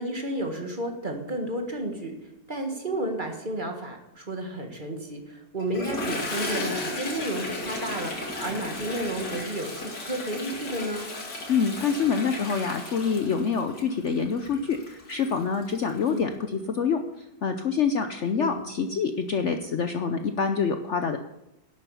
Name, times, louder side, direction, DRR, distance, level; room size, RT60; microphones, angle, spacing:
voice 1, 0.0-2.2 2.5-11.1 16.1-16.3 18.4-18.6, right 1 dB, 30° right, 3 dB, 1.8 m, -32 dB
Toilet flush, 5.6-16.2, left 2 dB, 80° left, 2.8 m, -35 dB
voice 2, 11.5-21.2, left 6 dB, 55° left, 7 dB, 0.9 m, -26 dB
11.5 x 8.2 x 7.0 m, 0.89 s
omnidirectional pair, 1.8 m